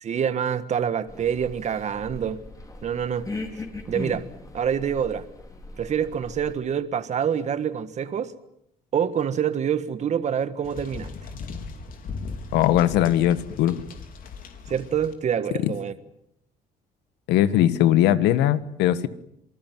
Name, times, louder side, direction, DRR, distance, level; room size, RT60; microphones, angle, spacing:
voice 1, 0.0-2.4 2.8-3.3 3.9-4.3 4.5-5.2 5.8-8.3 8.9-11.1 14.7-15.9, right 8 dB, 45° right, 12 dB, 1.5 m, -26 dB
sound 1, 1.1-6.5, left 2 dB, 20° left, 4.9 m, -39 dB
sound 2, 10.6-15.1, left 4 dB, 55° left, 4.3 m, -38 dB
voice 2, 12.5-13.8 15.6-15.7 17.3-19.1, left 12 dB, 90° left, 14 dB, 1.6 m, -20 dB
27.0 x 20.0 x 9.4 m, 0.75 s
cardioid pair, 110°, 17 cm